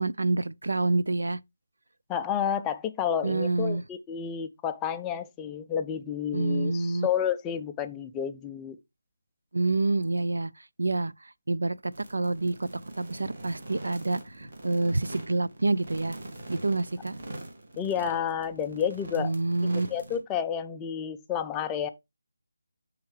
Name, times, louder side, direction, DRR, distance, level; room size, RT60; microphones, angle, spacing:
voice 1, 0.0-1.4 3.2-3.8 6.3-7.1 9.5-10.5 10.8-11.1 11.5-12.7 13.0-16.2 16.5-17.2 19.2-19.9, right 2 dB, 90° right, 0.4 m, -27 dB
voice 2, 2.1-8.8 17.8-19.3 19.6-21.9, left 8 dB, 10° left, 0.3 m, -30 dB
sound 1, 11.9-20.2, right 1 dB, 40° right, 1.6 m, -43 dB
10.5 x 3.6 x 3.1 m
figure-of-eight pair, 175°, 0 cm